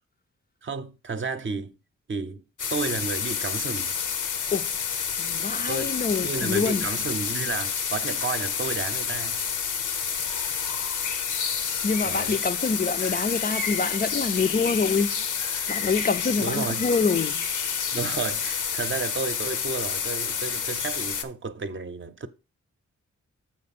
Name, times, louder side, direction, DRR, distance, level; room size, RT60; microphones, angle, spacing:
voice 1, 0.6-1.7 2.1-2.4 2.7-3.9 5.7-5.9 6.2-9.4 12.0-12.4 16.4-16.8 17.9-22.3, right 4 dB, 40° right, 0.7 m, -32 dB
sound 1, 2.6-21.2, left 7 dB, 90° left, 0.8 m, -29 dB
voice 2, 5.2-6.8 11.8-15.2 15.7-17.4, left 4 dB, 30° left, 0.4 m, -26 dB
7.5 x 5.3 x 4.1 m
wide cardioid pair, 115°, 30 cm